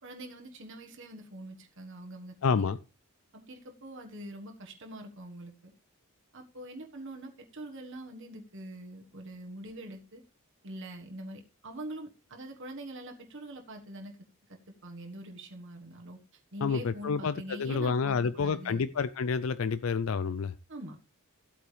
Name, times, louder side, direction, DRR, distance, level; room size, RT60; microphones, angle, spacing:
voice 1, 0.0-2.7 3.3-5.7 6.3-10.2 10.6-14.2 14.5-18.9 20.7-21.1, right 1 dB, 55° right, 1.5 m, -44 dB
voice 2, 2.4-2.8 16.6-20.5, left 5 dB, 65° left, 0.4 m, -29 dB
14.5 x 8.4 x 3.3 m
head